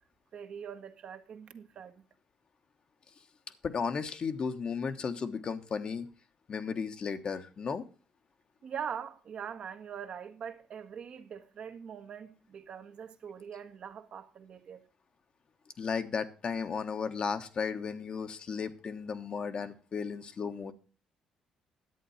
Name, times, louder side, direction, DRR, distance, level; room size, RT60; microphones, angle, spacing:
voice 1, 0.3-2.0 8.6-14.8, right 7 dB, 60° right, 1.4 m, -42 dB
voice 2, 3.6-6.1 6.5-7.8 15.8-20.7, left 5 dB, 45° left, 1.2 m, -34 dB
11.0 x 8.2 x 5.7 m
cardioid pair, 85°, 2 cm